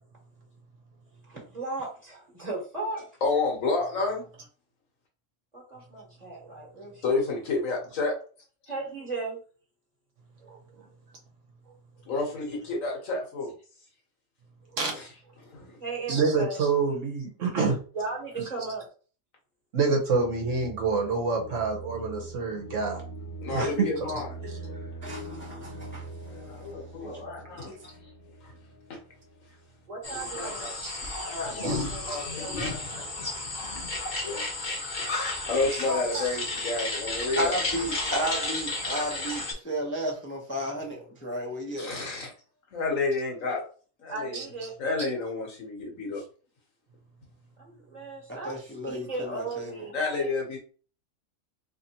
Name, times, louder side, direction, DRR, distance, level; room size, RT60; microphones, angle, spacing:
voice 1, 1.3-3.0 5.5-7.0 8.7-9.4 10.4-10.8 11.7-11.8 14.7-14.8 15.8-16.6 17.9-18.9 29.9-30.7 31.4-32.8 43.5-43.6 44.1-44.7 47.6-48.5 48.8-50.3, right 3 dB, 30° right, -5 dB, 1.3 m, -36 dB
voice 2, 3.2-4.3 7.0-8.1 12.0-13.5 14.9-15.1 15.4-15.8 23.4-24.3 26.3-27.7 28.4-28.5 28.9-29.0 30.1-30.5 31.2-32.8 33.5-33.7 34.2-34.5 35.5-37.6 41.8-42.3 42.7-43.6 44.0-44.4 44.8-46.2 49.9-50.6, left 3 dB, 65° left, 0 dB, 1.6 m, -30 dB
voice 3, 16.1-17.8 19.7-23.0 23.5-23.9 24.4-24.8 30.8-31.0 31.6-31.8 36.1-36.2 44.3-44.4, right 4 dB, 60° right, 2 dB, 1.2 m, -27 dB
sound 1, 20.1-29.9, right 2 dB, 85° left, 1.4 m, -43 dB
voice 4, 25.0-26.1 26.5-27.2 27.8-27.9 35.9-36.2 37.4-41.9 48.3-49.9, equal, 10° left, -2 dB, 0.8 m, -33 dB
sound 2, 30.0-39.5, left 2 dB, 35° left, 1.1 m, -32 dB
4.0 x 3.3 x 2.9 m, 0.39 s
omnidirectional pair, 1.5 m